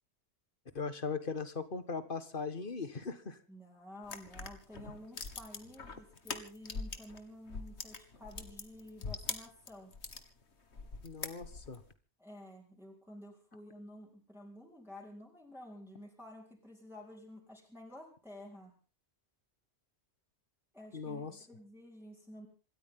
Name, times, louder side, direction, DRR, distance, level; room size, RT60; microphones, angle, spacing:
voice 1, 0.7-3.4 11.0-11.8 20.9-21.3, left 5 dB, 50° left, 12 dB, 1.7 m, -39 dB
voice 2, 3.5-9.9 12.2-18.7 20.7-22.5, left 1 dB, ahead, -2 dB, 4.1 m, -51 dB
sound 1, 4.0-7.2 7.5-10.2 10.7-11.8, left 4 dB, 75° left, 2.0 m, -42 dB
27.0 x 13.5 x 3.7 m, 0.35 s
omnidirectional pair, 1.1 m